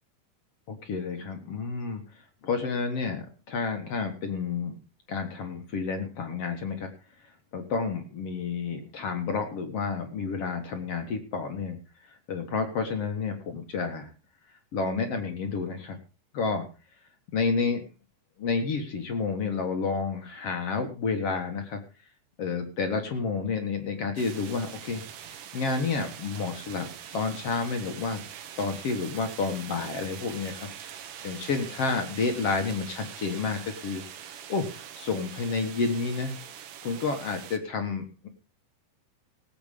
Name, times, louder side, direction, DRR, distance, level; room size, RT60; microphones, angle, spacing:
voice 1, 0.7-2.0 2.4-4.8 5.1-6.9 7.5-11.8 12.3-14.1 14.7-16.0 16.3-16.6 17.3-17.9 18.4-21.8 22.4-26.9 27.1-28.2 28.6-30.7 31.2-34.0 34.3-36.4 36.8-38.3, left 4 dB, 55° left, 5 dB, 2.3 m, -30 dB
sound 1, 24.2-37.6, right 9 dB, 90° right, 2.9 m, -43 dB
18.5 x 7.9 x 5.1 m, 0.33 s
omnidirectional pair, 3.7 m